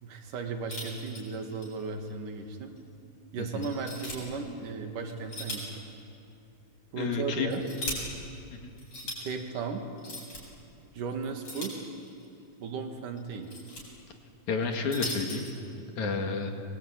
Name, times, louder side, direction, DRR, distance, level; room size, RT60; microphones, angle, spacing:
voice 1, 0.0-2.7 3.3-5.8 6.9-7.7 9.0-9.8 10.9-11.7 12.6-13.5, right 5 dB, 75° right, 4 dB, 3.6 m, -36 dB
sound 1, 0.7-1.7 2.1-2.2 2.8-2.9 3.6-4.2 5.1-5.8 6.1-6.2 7.2-8.0 8.8-9.2 10.0-10.4 11.4-12.2 13.2-13.8 14.6-15.5, left 1 dB, 40° left, 9.0 m, -38 dB
voice 2, 3.4-3.7 7.0-7.5 8.5-8.7 14.5-15.4 16.0-16.5, left 4 dB, 65° left, 3 dB, 3.4 m, -31 dB
27.0 x 23.5 x 9.0 m, 2.6 s
omnidirectional pair, 3.8 m